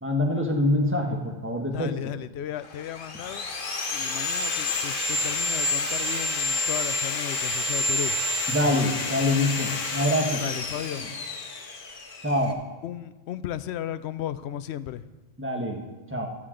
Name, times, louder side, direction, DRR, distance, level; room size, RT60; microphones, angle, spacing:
voice 1, 0.0-2.0 8.5-10.4 10.9-11.1 12.2-12.6 15.4-15.8 16.1-16.3, left 1 dB, 10° right, 1 dB, 1.3 m, -25 dB
voice 2, 1.7-3.5 3.9-8.1 10.4-11.1 12.8-15.0, left 11 dB, 85° left, 15 dB, 0.8 m, -35 dB
Sawing, 2.6-12.5, left 2 dB, 55° left, 1.2 m, -29 dB
12.5 x 11.5 x 3.8 m, 1.2 s
omnidirectional pair, 1.1 m